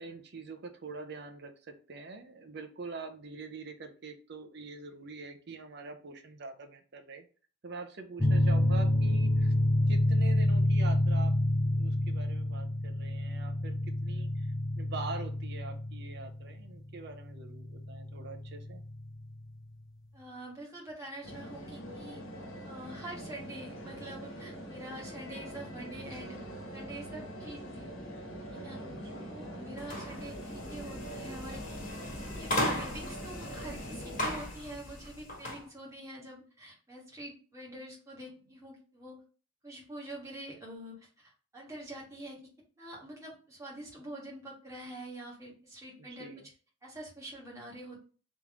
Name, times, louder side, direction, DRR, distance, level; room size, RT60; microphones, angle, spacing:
voice 1, 0.0-7.2 7.6-9.5 9.9-18.8 28.9-29.3 46.0-46.5, right 4 dB, 55° right, 6 dB, 0.6 m, -44 dB
sound 1, 8.2-19.4, left 1 dB, 15° left, 0.5 m, -28 dB
voice 2, 20.1-22.2 22.6-26.4 26.7-27.9 28.5-28.8 29.3-31.6 32.3-32.5 32.7-39.2 39.6-42.4 42.8-46.3 46.8-48.1, right 1 dB, 15° right, -4 dB, 1.5 m, -45 dB
sound 2, 21.2-34.3, equal, 70° left, 1.3 m, -43 dB
sound 3, 29.8-35.6, left 1 dB, 40° left, 1.7 m, -37 dB
3.6 x 3.1 x 3.6 m, 0.38 s
head